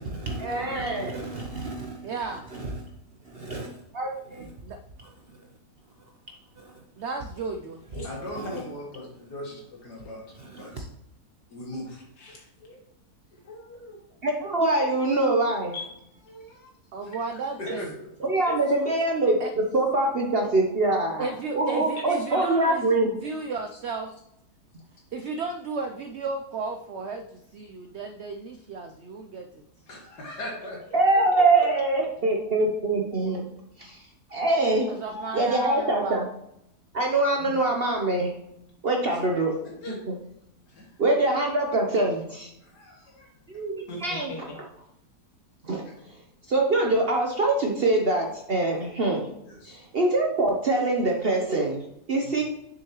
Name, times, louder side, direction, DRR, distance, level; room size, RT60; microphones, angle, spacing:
voice 1, 0.1-2.1 2.5-2.7 3.3-3.7 3.9-4.5 8.3-8.4 10.5-10.7 14.2-15.7 18.2-23.1 30.9-33.5 33.8-34.0 34.3-34.9 35.3-36.3 36.9-38.3 38.8-39.5 40.1-40.2 41.0-42.5 43.5-44.3 45.6-45.9 46.5-49.3 49.7-52.4, right 2 dB, 50° right, 1 dB, 0.8 m, -24 dB
voice 2, 2.0-2.5 4.6-4.8 7.0-7.8 16.9-17.9 19.4-19.5 21.2-24.1 25.1-29.6 34.9-36.2, right 4 dB, 90° right, 6 dB, 0.5 m, -34 dB
voice 3, 8.0-10.9 11.5-12.0 15.7-15.9 17.0-17.1 17.6-18.0 29.9-30.8 39.1-39.2 39.6-40.0 40.7-40.9 42.6-43.3 45.9-46.0 49.5-49.8 52.2-52.3, left 1 dB, 80° left, -2 dB, 2.4 m, -39 dB
voice 4, 12.2-12.8 13.3-14.0 16.3-16.7 17.3-17.4 17.7-17.8 18.4-18.9 22.3-22.7 31.1-31.2 31.6-31.7 35.0-35.6 37.4-37.6 43.9-44.6, equal, 65° left, -1 dB, 2.1 m, -40 dB
6.6 x 6.3 x 3.0 m, 0.80 s
omnidirectional pair, 1.7 m